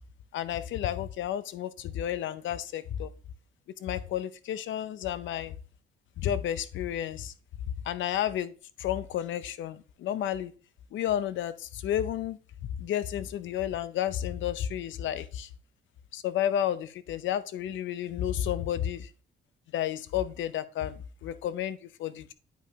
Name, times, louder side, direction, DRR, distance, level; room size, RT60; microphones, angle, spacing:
voice 1, 0.3-3.1 3.8-5.5 6.2-7.3 7.9-8.5 8.8-10.5 10.9-12.4 12.8-15.5 16.1-19.1 19.7-22.3, left 11 dB, 75° left, 14 dB, 0.6 m, -31 dB
8.9 x 5.1 x 2.8 m, 0.38 s
cardioid pair, 90°, 20 cm